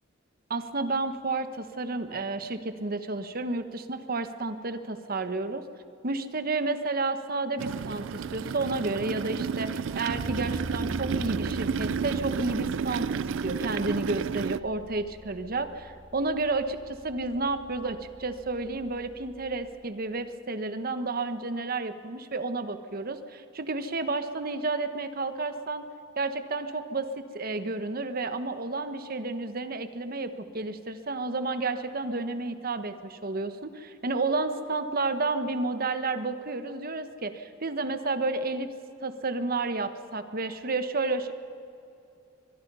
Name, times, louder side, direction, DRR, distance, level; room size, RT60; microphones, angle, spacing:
voice 1, 0.5-5.6 6.0-25.9 26.2-38.7 39.0-41.3, right 3 dB, 50° right, 10 dB, 1.2 m, -31 dB
sound 1, 7.6-14.6, right 6 dB, 70° right, 0.4 m, -31 dB
Bass guitar, 10.1-19.9, equal, 35° right, 5.3 m, -43 dB
23.5 x 22.0 x 5.6 m, 2.6 s
head